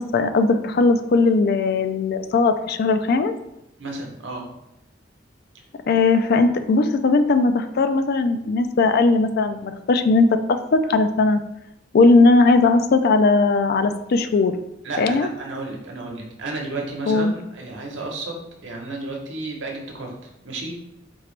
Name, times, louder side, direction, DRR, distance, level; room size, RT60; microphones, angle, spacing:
voice 1, 0.0-3.3 5.9-11.4 11.9-14.5 15.0-15.3 17.1-17.3, left 3 dB, 55° left, 9 dB, 0.4 m, -18 dB
voice 2, 3.8-4.5 14.8-18.3 18.6-20.7, right 2 dB, 85° right, 0 dB, 0.9 m, -32 dB
4.4 x 2.9 x 3.2 m, 0.84 s
head